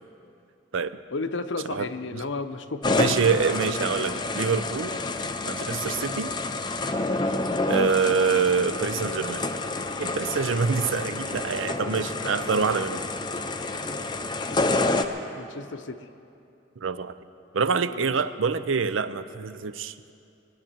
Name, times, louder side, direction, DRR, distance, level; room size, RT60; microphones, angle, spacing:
voice 1, 1.1-3.3 15.4-16.1 17.9-18.1, left 3 dB, 70° left, 10 dB, 0.7 m, -33 dB
sound 1, 2.8-15.1, left 2 dB, 20° left, 0.5 m, -28 dB
voice 2, 3.0-5.0 5.5-6.3 7.6-9.4 10.0-13.0 16.8-17.1 17.5-20.1, right 5 dB, 80° right, 13 dB, 0.6 m, -26 dB
20.0 x 8.9 x 7.5 m, 2.6 s
head